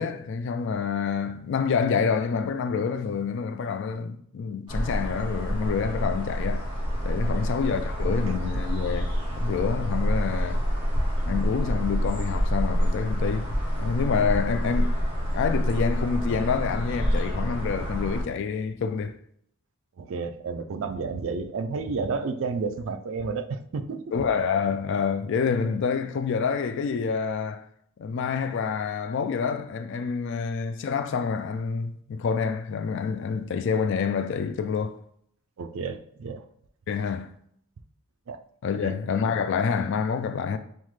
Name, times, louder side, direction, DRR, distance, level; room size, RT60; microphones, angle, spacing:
voice 1, 0.0-6.7 7.0-9.1 9.4-10.6 11.2-13.5 13.8-19.2 24.1-27.6 28.0-35.0 36.9-37.3 38.6-40.6, left 6 dB, 55° left, 0.3 m, -27 dB
sound 1, 4.7-18.2, equal, 25° right, 1.3 m, -27 dB
voice 2, 20.0-24.2 35.6-36.5 38.3-38.4 38.8-38.9, right 4 dB, 60° right, 0.4 m, -31 dB
5.5 x 2.1 x 3.1 m
head